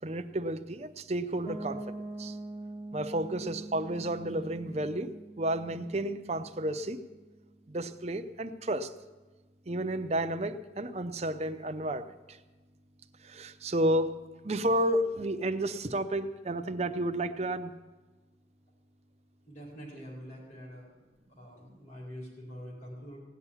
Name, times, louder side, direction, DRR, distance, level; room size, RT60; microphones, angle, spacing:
voice 1, 0.0-2.4 2.9-7.0 7.7-8.9 9.7-12.4 13.2-14.2 14.4-17.7, right 1 dB, 35° right, 8 dB, 0.7 m, -32 dB
Piano, 1.5-7.2, right 2 dB, 20° left, 1.8 m, -44 dB
voice 2, 19.5-20.9 21.3-23.2, equal, 40° left, -3 dB, 4.6 m, -45 dB
17.0 x 7.1 x 9.8 m, 1.3 s
head